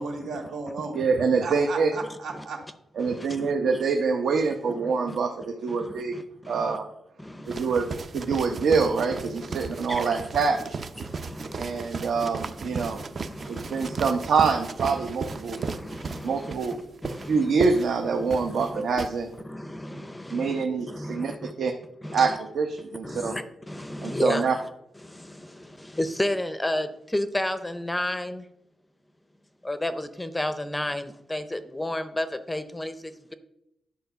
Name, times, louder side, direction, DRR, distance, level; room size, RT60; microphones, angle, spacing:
voice 1, 0.0-1.0 1.4-2.6, right 3 dB, 90° right, 1 dB, 2.2 m, -34 dB
voice 2, 0.9-1.9 3.0-6.2 6.5-6.9 7.5-10.8 11.6-13.0 13.5-15.6 16.2-16.8 17.3-19.3 20.3-21.3 21.6-21.7 22.1-23.3 24.0-24.6, right 5 dB, 70° right, 3 dB, 0.9 m, -25 dB
voice 3, 3.0-3.5 4.4-4.5 4.8-5.2 5.7-6.8 7.2-8.0 8.3-8.7 9.3-10.3 11.0-11.9 12.1-12.3 12.6-14.0 14.9-16.5 17.0-17.8 18.1-18.8 19.4-21.5 22.0-22.4 23.0-24.6 25.0-28.5 29.6-33.3, left 1 dB, 10° left, 11 dB, 0.5 m, -33 dB
sound 1, 7.5-19.1, right 4 dB, 40° right, 0.5 m, -35 dB
10.5 x 4.7 x 6.7 m, 0.84 s
wide cardioid pair, 175°, 0 cm